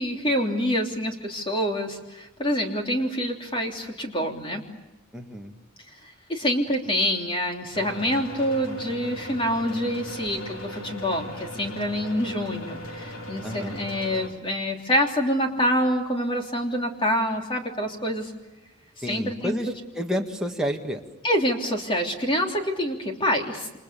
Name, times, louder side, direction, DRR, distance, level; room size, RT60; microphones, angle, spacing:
voice 1, 0.0-4.6 6.3-18.3 19.0-19.6 21.2-23.8, equal, 25° left, 2 dB, 3.3 m, -26 dB
voice 2, 5.1-5.5 13.4-13.8 19.0-19.7 19.9-21.0, equal, 5° right, 1 dB, 1.8 m, -29 dB
sound 1, 7.7-14.3, equal, 80° left, 3.4 m, -38 dB
29.0 x 26.5 x 7.0 m, 1.1 s
head